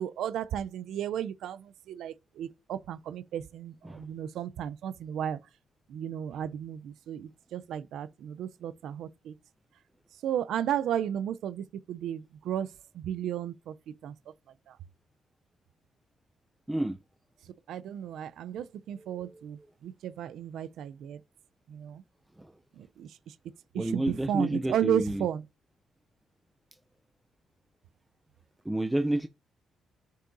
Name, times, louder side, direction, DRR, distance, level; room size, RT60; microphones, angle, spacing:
voice 1, 0.0-5.4 5.9-9.3 10.2-12.7 12.9-13.7 14.0-14.1 14.7-14.8 17.7-21.2 21.7-22.0 22.8-23.1 23.7-25.4, right 10 dB, 75° right, 0.5 m, -34 dB
voice 2, 16.7-17.0 19.0-19.4 23.7-25.3 28.7-29.3, right 1 dB, 10° right, 0.5 m, -30 dB
9.8 x 5.4 x 2.6 m
cardioid pair, 90°, 0 cm